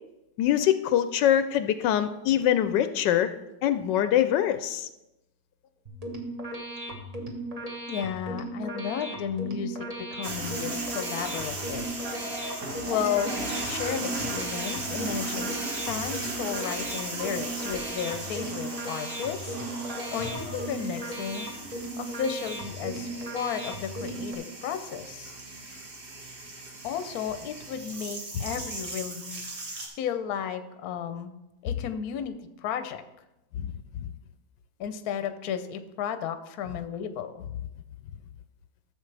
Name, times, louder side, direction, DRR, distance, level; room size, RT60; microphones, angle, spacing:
voice 1, 0.4-3.3 3.6-4.9 33.6-33.7, left 11 dB, 85° left, 11 dB, 1.2 m, -24 dB
sound 1, 5.9-24.4, right 1 dB, 25° right, 1.1 m, -37 dB
voice 2, 7.9-11.9 12.9-13.3 13.6-15.5 15.9-19.6 20.1-25.3 26.8-29.4 30.0-31.3 31.6-32.4 32.6-33.0 34.8-37.3, left 8 dB, 65° left, 9 dB, 1.1 m, -33 dB
sound 2, 10.2-29.9, right 2 dB, 65° right, 2.3 m, -37 dB
Chicken rooster, 11.8-13.6 19.7-21.5 23.7-23.8 24.1-24.3, left 3 dB, 45° left, 0.8 m, -43 dB
14.0 x 7.2 x 3.3 m, 0.95 s
omnidirectional pair, 1.9 m